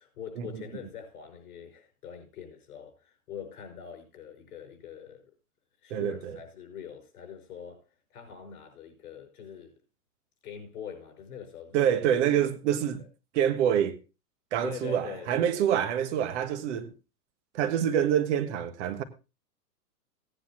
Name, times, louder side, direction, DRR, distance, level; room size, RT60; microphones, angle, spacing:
voice 1, 0.0-5.3 5.8-7.9 8.1-9.7 10.4-11.8 13.0-13.1 14.6-15.7, left 8 dB, 60° left, 5.8 m, -43 dB
voice 2, 5.9-6.4 11.7-13.0 13.3-14.0 14.5-16.9 17.5-19.0, right 9 dB, 45° right, 1.5 m, -26 dB
17.0 x 10.0 x 2.9 m
hypercardioid pair, 150°, 48 cm